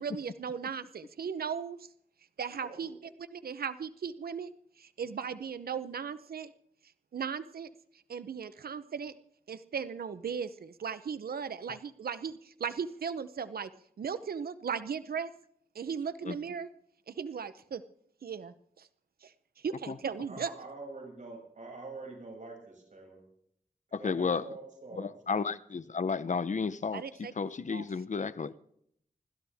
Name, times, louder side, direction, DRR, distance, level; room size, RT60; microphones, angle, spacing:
voice 1, 0.0-1.9 2.4-3.0 3.3-6.5 7.1-7.7 8.1-9.2 9.5-13.7 14.0-15.3 15.7-16.7 17.1-17.8 18.2-18.9 19.2-20.5 26.9-27.3 27.7-27.8, right 6 dB, 80° right, 12 dB, 0.7 m, -37 dB
voice 2, 20.3-23.2 23.9-25.1, right 3 dB, 55° right, 0 dB, 6.5 m, -45 dB
voice 3, 23.9-24.5 24.9-28.5, left 5 dB, 55° left, 15 dB, 0.8 m, -32 dB
27.5 x 12.5 x 3.5 m, 0.69 s
wide cardioid pair, 70°, 15 cm